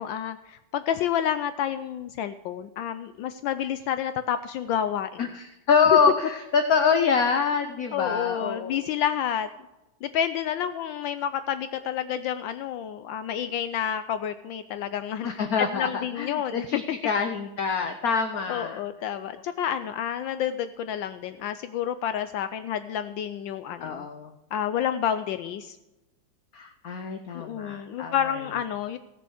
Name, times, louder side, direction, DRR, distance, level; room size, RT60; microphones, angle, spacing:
voice 1, 0.0-5.2 7.9-9.5 10.0-16.7 18.5-24.1 24.5-25.8 27.3-29.0, left 9 dB, 75° left, 11 dB, 1.3 m, -29 dB
voice 2, 5.2-8.9 15.2-18.8 23.8-24.3 26.5-28.1, left 5 dB, 55° left, 7 dB, 1.1 m, -25 dB
17.5 x 6.8 x 6.4 m, 1.0 s
omnidirectional pair, 2.2 m